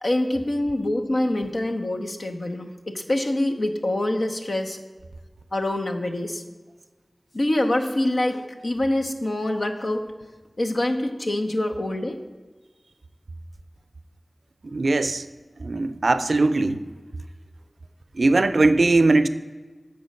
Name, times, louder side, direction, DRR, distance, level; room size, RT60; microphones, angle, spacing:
voice 1, 0.0-4.8 5.5-6.4 7.3-10.0 10.6-12.1, left 1 dB, 75° left, 4 dB, 0.8 m, -25 dB
voice 2, 14.7-15.2 15.6-16.8 18.2-19.3, right 2 dB, 90° right, 11 dB, 0.4 m, -19 dB
7.0 x 5.1 x 6.4 m, 1.3 s
wide cardioid pair, 45°, 0 cm